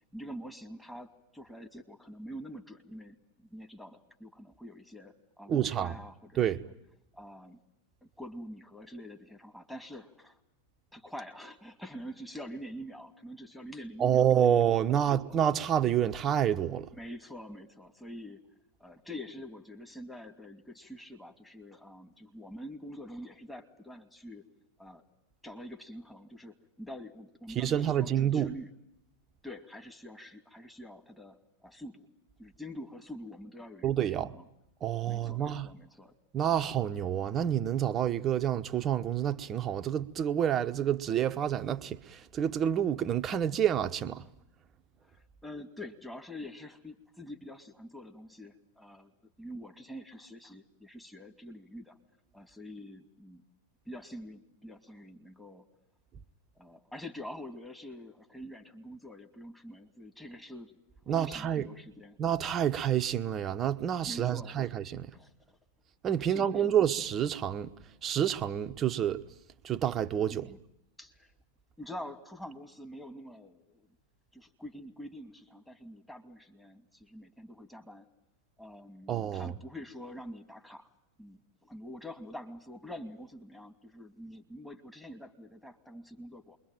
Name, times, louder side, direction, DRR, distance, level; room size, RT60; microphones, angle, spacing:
voice 1, 0.1-6.7 7.1-7.6 8.0-10.4 10.9-14.3 14.7-15.4 16.9-18.4 18.8-24.4 24.8-25.0 25.4-28.7 29.4-32.1 32.4-33.9 34.2-34.5 35.0-36.1 36.5-36.7 37.3-37.4 45.0-49.1 49.4-52.0 52.3-53.4 53.9-55.6 56.6-60.7 61.1-62.2 64.0-64.7 65.1-65.6 66.2-66.8 70.3-70.6 71.0-71.3 71.8-73.9 74.3-78.1 78.6-80.9 81.2-86.6, equal, 5° left, 2.6 m, -46 dB
voice 2, 5.5-5.9 6.4-6.6 14.0-16.9 27.5-28.5 33.8-34.3 34.8-35.7 36.3-44.2 61.1-61.7 62.2-65.1 66.0-67.7 68.0-69.2 69.6-70.5 79.1-79.5, right 9 dB, 30° right, 1.1 m, -28 dB
28.0 x 22.5 x 9.2 m
hypercardioid pair, 95°, 0 cm